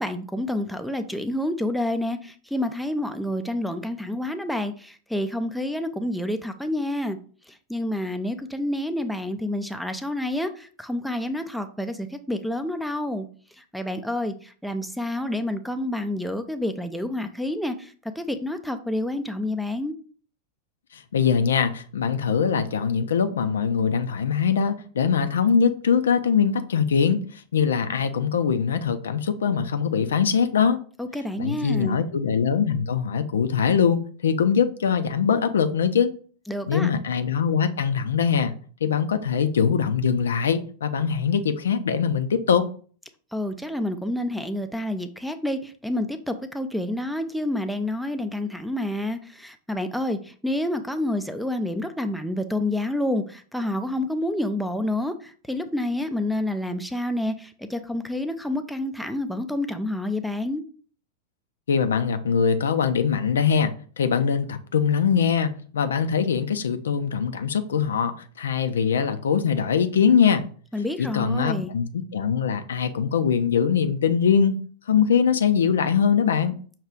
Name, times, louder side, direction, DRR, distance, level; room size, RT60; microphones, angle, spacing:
voice 1, 0.0-7.2 7.5-13.3 13.6-19.9 31.0-32.0 36.5-36.9 43.3-60.6 70.7-71.7, left 1 dB, ahead, 0.4 m, -28 dB
voice 2, 20.9-30.8 31.4-36.1 36.7-38.5 38.8-42.6 61.7-70.4 71.0-74.6 74.9-76.6, left 7 dB, 65° left, 0.4 m, -22 dB
5.9 x 2.3 x 3.7 m
figure-of-eight pair, 90°, 0 cm